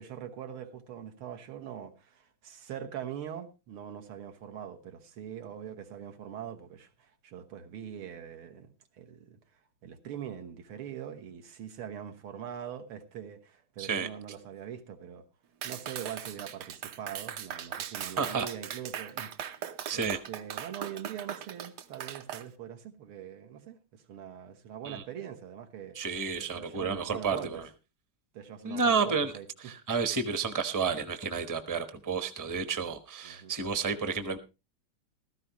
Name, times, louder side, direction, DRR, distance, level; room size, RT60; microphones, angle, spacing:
voice 1, 0.0-9.4 9.8-15.2 15.6-19.3 19.9-26.0 26.4-27.5 28.3-29.7 33.2-33.5, right 9 dB, 90° right, 2.2 m, -42 dB
Clapping, 15.6-22.4, right 9 dB, 65° right, 1.2 m, -39 dB
voice 2, 18.2-18.5 19.9-20.2 24.8-25.0 25.9-27.6 28.6-29.3 29.6-34.4, right 5 dB, 20° right, 0.5 m, -31 dB
15.5 x 13.5 x 3.1 m
omnidirectional pair, 2.3 m